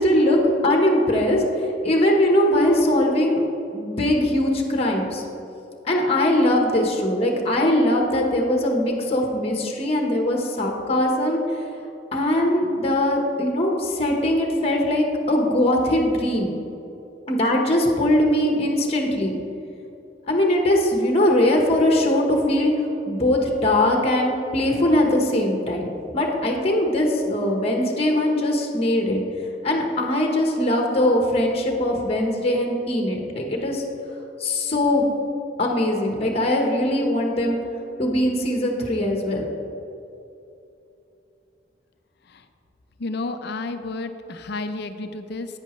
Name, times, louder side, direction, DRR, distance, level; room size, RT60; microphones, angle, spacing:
voice 1, 0.0-3.4 3.7-5.2 5.8-11.4 12.1-16.5 17.3-19.3 20.3-22.7 23.1-29.2 29.6-33.8 34.4-35.1 35.6-37.6 38.0-39.5, left 1 dB, 35° left, 1 dB, 1.2 m, -21 dB
voice 2, 43.0-45.6, left 3 dB, 65° left, 8 dB, 0.6 m, -31 dB
11.0 x 9.1 x 3.1 m, 2.8 s
head